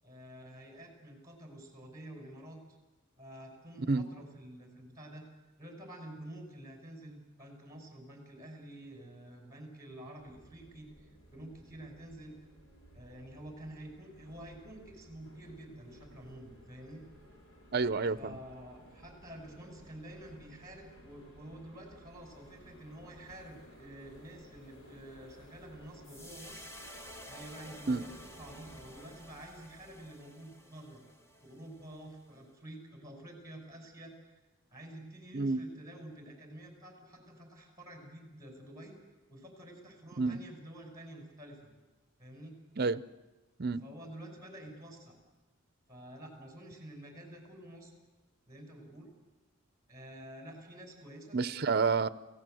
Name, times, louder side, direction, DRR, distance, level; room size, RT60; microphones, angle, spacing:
voice 1, 0.0-2.6 3.2-5.3 5.6-12.3 12.9-17.0 18.1-26.7 27.3-31.0 31.4-34.3 34.7-39.0 39.3-41.7 42.2-42.5 43.8-45.2 45.9-47.9 48.5-49.1 49.9-51.4, right 1 dB, 15° right, 5.4 m, -49 dB
sound 1, 10.2-29.1, equal, 75° left, 5.2 m, -57 dB
voice 2, 17.7-18.4 27.9-28.0 35.3-35.6 40.2-40.4 42.8-43.0 43.6-43.8 51.3-52.1, right 4 dB, 50° right, 0.7 m, -29 dB
sound 2, 26.0-32.4, equal, 15° left, 1.7 m, -52 dB
29.5 x 16.5 x 7.8 m
head